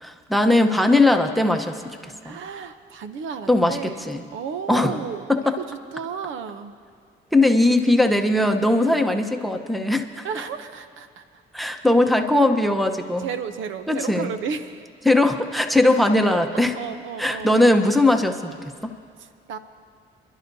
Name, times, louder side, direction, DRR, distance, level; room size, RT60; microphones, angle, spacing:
voice 1, 0.0-1.7 2.2-2.4 3.5-3.8 4.1-4.2 4.7-4.9 5.3-5.5 7.3-10.3 11.5-13.3 13.9-14.3 15.0-16.7 17.2-18.5 18.8-18.9, left 2 dB, ahead, 7 dB, 0.9 m, -19 dB
voice 2, 2.2-6.7 8.8-9.0 10.2-11.2 13.2-14.9 16.7-17.6 19.2-19.6, right 6 dB, 80° right, 10 dB, 0.7 m, -33 dB
28.5 x 11.5 x 2.7 m, 2.1 s
cardioid pair, 90°, 20 cm